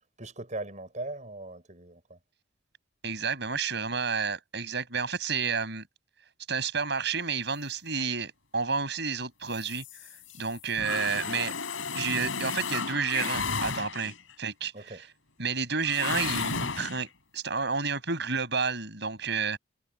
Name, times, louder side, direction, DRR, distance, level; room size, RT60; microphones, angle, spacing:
voice 1, 0.2-2.2 14.7-15.0, right 2 dB, 40° right, 7.7 m, -39 dB
voice 2, 3.0-5.8 6.5-9.8 10.4-11.5 11.9-15.1 15.4-17.1 17.3-19.6, right 5 dB, 60° right, 7.9 m, -30 dB
sound 1, 9.5-14.3 15.8-17.0, left 5 dB, 90° left, 5.2 m, -33 dB
head